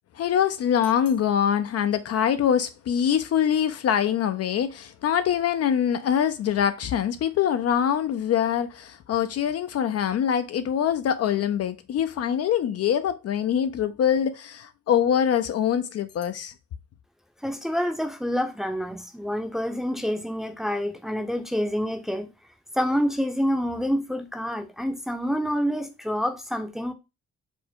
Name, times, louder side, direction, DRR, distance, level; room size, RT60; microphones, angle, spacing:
voice 1, 0.2-16.5, left 9 dB, 55° left, 0.5 m, -24 dB
voice 2, 17.4-22.3 22.7-26.9, equal, ahead, 0.6 m, -27 dB
4.5 x 2.1 x 4.3 m
cardioid pair, 90°, 30 cm